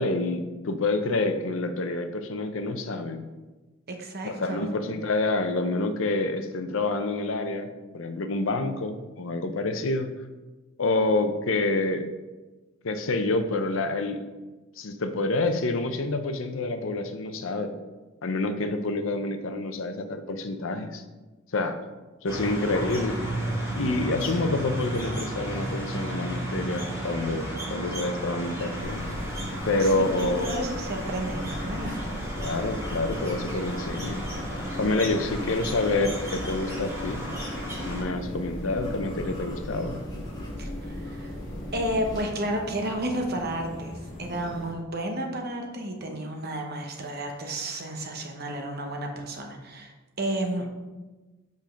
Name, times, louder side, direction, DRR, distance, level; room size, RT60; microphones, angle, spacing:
voice 1, 0.0-3.2 4.2-7.7 7.9-10.1 10.8-12.1 12.8-14.2 14.8-17.7 18.2-21.0 21.5-21.8 22.2-23.2 23.8-29.2 29.6-30.5 32.4-34.3 34.8-37.3 37.8-40.0, left 2 dB, 70° left, 8 dB, 0.6 m, -27 dB
voice 2, 3.9-4.7 29.8-32.0 40.6-41.3 41.7-50.6, right 1 dB, 50° right, 2 dB, 1.0 m, -32 dB
sound 1, 22.3-38.0, right 1 dB, 15° right, 2.0 m, -34 dB
UK Deciduous Woodland in late Winter with wind through trees, 28.6-44.7, left 1 dB, 35° left, 1.1 m, -43 dB
sound 2, 28.8-42.2, left 1 dB, 20° left, 1.4 m, -37 dB
5.3 x 5.3 x 5.1 m, 1.2 s
head